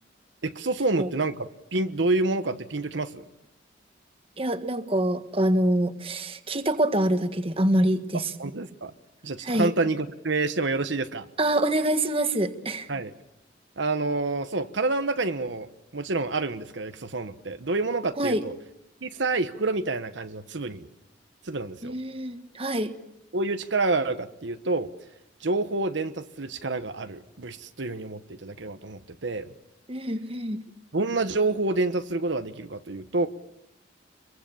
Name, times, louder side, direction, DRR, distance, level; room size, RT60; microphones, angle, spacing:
voice 1, 0.4-3.2 8.4-8.9 9.2-11.2 12.9-13.1 13.8-18.5 19.0-20.9 21.4-22.0 23.3-24.9 25.4-29.5 30.9-33.3, right 3 dB, 75° right, 9 dB, 1.1 m, -28 dB
voice 2, 4.4-8.3 9.4-9.7 11.4-12.9 18.2-18.4 21.8-22.9 29.9-30.6, right 1 dB, 30° right, 8 dB, 1.6 m, -25 dB
26.5 x 23.0 x 7.1 m, 0.82 s
head